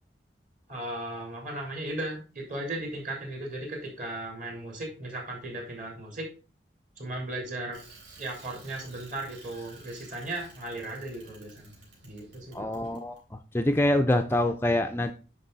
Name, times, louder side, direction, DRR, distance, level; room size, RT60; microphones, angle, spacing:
voice 1, 0.7-6.3 7.0-7.8 8.2-11.8 12.0-12.8, right 1 dB, 45° right, 0 dB, 3.4 m, -36 dB
Bicycle, 7.7-13.2, right 2 dB, 90° right, 3.8 m, -53 dB
voice 2, 12.5-15.1, left 1 dB, 15° left, 6 dB, 0.4 m, -25 dB
9.8 x 5.4 x 3.9 m, 0.35 s
head